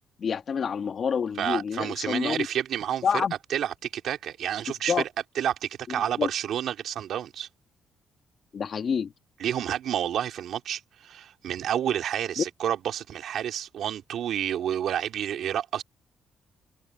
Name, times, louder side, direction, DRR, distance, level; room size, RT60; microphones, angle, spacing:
voice 1, 0.2-2.5 3.0-3.3 4.9-5.0 6.2-6.3 8.5-9.1 12.4-12.5, left 6 dB, 50° left, 1.6 m, -27 dB
voice 2, 1.4-3.1 3.5-4.9 5.3-7.5 9.4-15.8, right 10 dB, 70° right, 3.3 m, -29 dB
cardioid pair, 90°, 0 cm